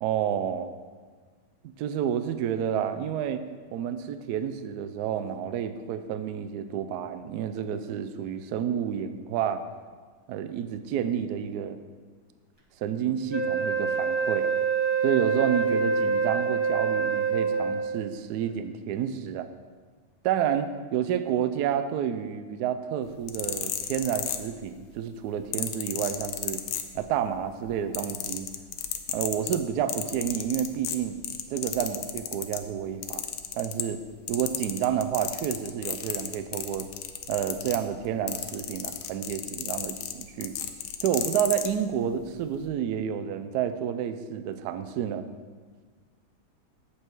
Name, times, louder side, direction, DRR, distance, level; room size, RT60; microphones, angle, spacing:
voice 1, 0.0-0.7 1.8-3.4 3.7-9.6 10.3-11.8 12.8-14.5 15.0-19.5 20.2-26.6 26.9-28.5 29.1-31.2 31.5-33.3 33.5-34.0 34.3-36.9 37.3-40.5 41.0-45.3, right 9 dB, 80° right, 10 dB, 0.9 m, -30 dB
Wind instrument woodwind instrument, 13.3-18.0, right 5 dB, 25° right, 0.6 m, -26 dB
sound 1, 23.1-24.8 25.5-27.3 27.6-32.6 33.0-34.0 34.3-41.7 42.4-42.6, left 10 dB, 75° left, 1.4 m, -33 dB
8.2 x 7.4 x 4.6 m, 1.5 s
omnidirectional pair, 2.3 m